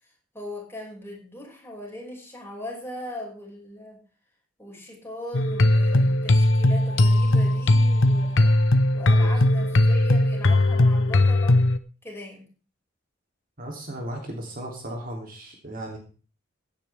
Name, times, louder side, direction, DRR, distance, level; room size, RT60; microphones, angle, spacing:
voice 1, 0.0-4.0 4.6-8.6 8.9-11.6 12.0-12.5, left 1 dB, 10° left, -3 dB, 5.8 m, -39 dB
sound 1, 5.3-11.8, left 1 dB, 65° left, 0.8 m, -19 dB
voice 2, 13.6-16.0, right 1 dB, 45° right, 1 dB, 3.1 m, -36 dB
16.5 x 10.0 x 3.5 m, 0.37 s
head